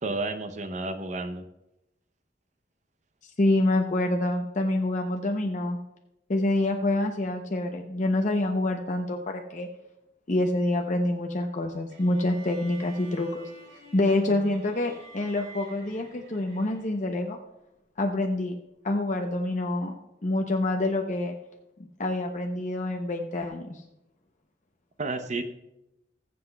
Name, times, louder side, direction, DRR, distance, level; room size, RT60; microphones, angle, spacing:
voice 1, 0.0-1.5 25.0-25.4, right 2 dB, 40° right, 8 dB, 0.6 m, -31 dB
voice 2, 3.2-5.8 6.3-9.7 10.3-13.5 13.9-17.4 18.0-18.6 18.8-19.9 20.2-21.3 22.0-23.8, left 2 dB, 40° left, 2 dB, 0.7 m, -27 dB
sound 1, 11.9-17.2, right 2 dB, 85° right, 3.2 m, -49 dB
20.0 x 7.8 x 2.3 m, 0.90 s
head